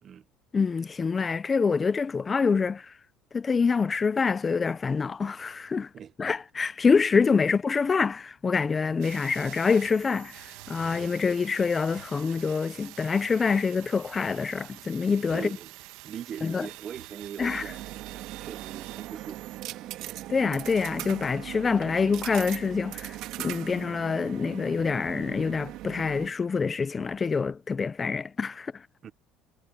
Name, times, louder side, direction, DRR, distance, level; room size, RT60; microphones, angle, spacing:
voice 1, 0.5-2.9 3.3-5.9 6.2-15.5 16.4-16.7 17.4-17.6 20.3-28.8, left 5 dB, 20° left, 0.4 m, -26 dB
sound 1, 9.0-19.6, right 18 dB, 75° right, 1.1 m, -46 dB
voice 2, 15.3-15.7 16.0-20.0 29.0-29.1, right 8 dB, 30° right, 0.6 m, -41 dB
sound 2, 17.4-26.3, right 15 dB, 55° right, 2.3 m, -39 dB
cardioid pair, 165°, 0 cm